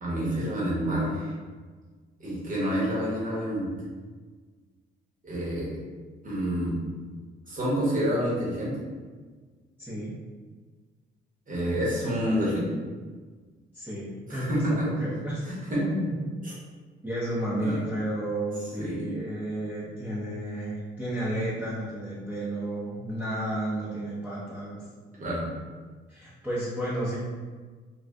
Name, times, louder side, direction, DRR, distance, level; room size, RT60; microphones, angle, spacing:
voice 1, 0.0-1.3 2.2-3.7 5.2-5.7 6.2-6.7 7.5-8.8 11.5-12.7 14.3-14.9 15.5-15.8 16.4-16.5 17.5-17.8 18.8-19.1 25.2-25.5, equal, 45° right, -6 dB, 1.2 m, -28 dB
voice 2, 9.8-10.2 13.7-15.4 15.8-16.2 17.0-24.8 26.1-27.2, right 1 dB, 10° right, -10 dB, 0.8 m, -32 dB
2.6 x 2.3 x 3.3 m, 1.4 s
cardioid pair, 90°, 20 cm